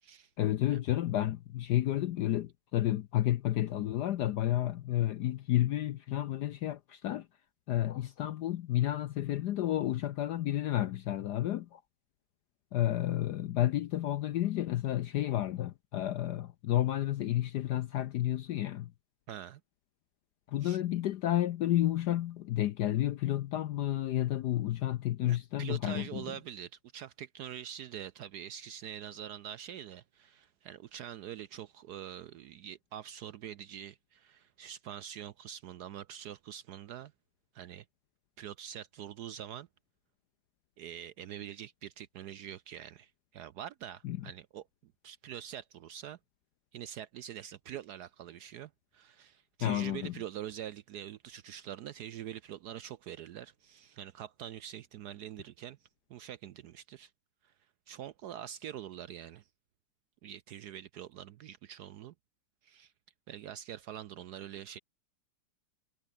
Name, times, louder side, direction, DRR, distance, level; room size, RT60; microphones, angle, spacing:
voice 1, 0.4-7.3 7.7-11.8 12.7-18.9 20.5-26.3 44.0-44.3 49.6-50.1, left 13 dB, 70° left, 1.0 m, -31 dB
voice 2, 19.3-19.6 20.6-20.8 25.2-37.1 37.5-37.8 38.4-39.7 40.8-46.2 46.7-55.8 56.1-57.1 57.4-57.5 57.9-59.5 60.2-62.1 62.6-62.9 63.3-64.8, right 10 dB, 75° right, 0.9 m, -45 dB
omnidirectional pair, 2.4 m